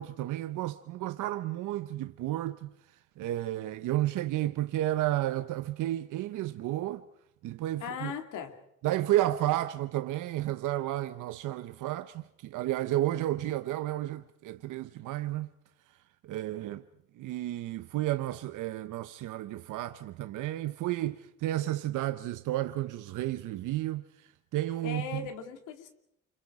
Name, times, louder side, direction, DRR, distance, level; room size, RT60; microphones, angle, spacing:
voice 1, 0.0-2.7 3.2-7.0 7.4-8.1 8.8-15.5 16.2-16.8 17.2-25.3, right 14 dB, 85° right, 0.8 m, -32 dB
voice 2, 7.8-8.6 24.8-25.9, left 7 dB, 90° left, 2.5 m, -38 dB
29.0 x 26.0 x 4.8 m
cardioid pair, 90°, 30 cm